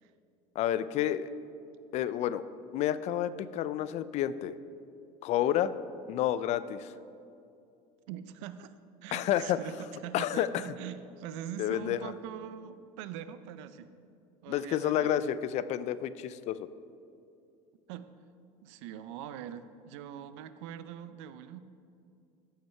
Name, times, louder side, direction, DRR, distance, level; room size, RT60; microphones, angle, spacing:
voice 1, 0.6-1.3 1.9-2.4 2.7-4.5 5.2-5.7 6.1-6.9 9.1-9.6 10.1-10.6 11.6-12.1 14.5-16.7, left 11 dB, 50° left, 15 dB, 0.4 m, -30 dB
voice 2, 8.1-8.7 9.0-13.9 14.4-15.1 17.9-18.1 18.6-21.6, right 10 dB, 85° right, 12 dB, 0.5 m, -43 dB
14.5 x 5.6 x 4.5 m, 2.5 s
cardioid pair, 130°, 15 cm